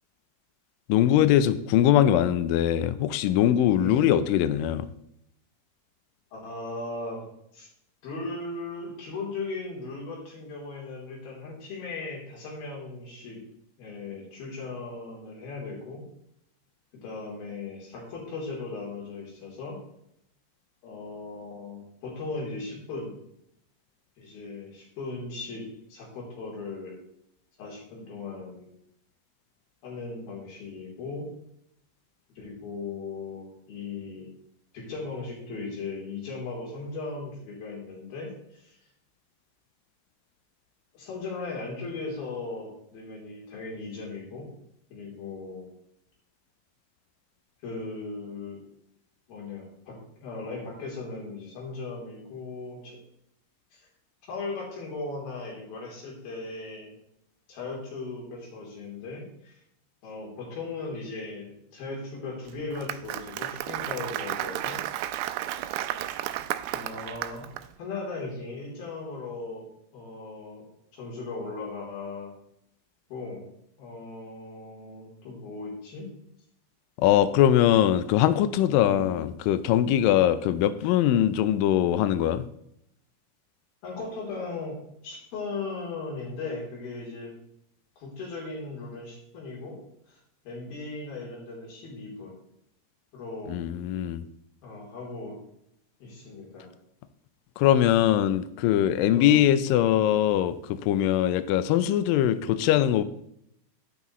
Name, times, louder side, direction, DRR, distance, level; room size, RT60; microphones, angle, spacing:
voice 1, 0.9-4.9 77.0-82.4 93.5-94.2 97.6-103.0, left 11 dB, 85° left, 13 dB, 2.0 m, -22 dB
voice 2, 3.8-4.1 6.3-7.7 8.0-13.4 13.8-16.0 16.9-19.8 20.8-23.1 24.2-25.6 25.9-27.0 27.6-28.7 29.8-31.3 32.4-34.3 34.7-38.8 40.9-44.5 44.9-45.7 47.6-48.6 49.3-53.0 54.3-56.9 57.5-59.6 60.0-64.8 66.1-66.2 66.7-67.5 67.8-69.7 69.9-70.7 70.9-72.3 73.1-73.5 73.8-76.1 78.8-79.2 83.8-84.8 85.0-87.3 88.0-89.8 90.1-92.3 93.1-93.6 94.6-95.4 96.0-96.7 99.1-99.5, left 3 dB, 65° left, -2 dB, 5.0 m, -37 dB
Applause, 62.5-67.6, right 13 dB, 80° right, 2.3 m, -33 dB
11.0 x 9.8 x 3.1 m, 0.74 s
omnidirectional pair, 4.6 m